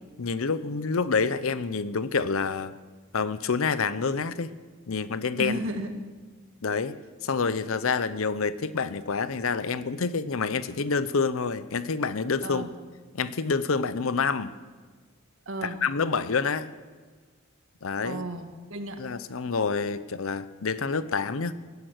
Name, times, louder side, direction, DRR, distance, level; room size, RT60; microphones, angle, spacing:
voice 1, 0.2-2.8 3.1-4.5 4.9-5.6 6.6-7.0 7.2-12.7 13.1-14.5 15.6-16.7 17.8-18.2 19.0-21.5, left 5 dB, 80° left, 14 dB, 0.7 m, -27 dB
voice 2, 5.4-5.9 12.4-12.7 15.4-15.8 18.0-19.0, right 1 dB, 75° right, 5 dB, 1.7 m, -33 dB
18.0 x 10.5 x 6.5 m, 1.4 s
head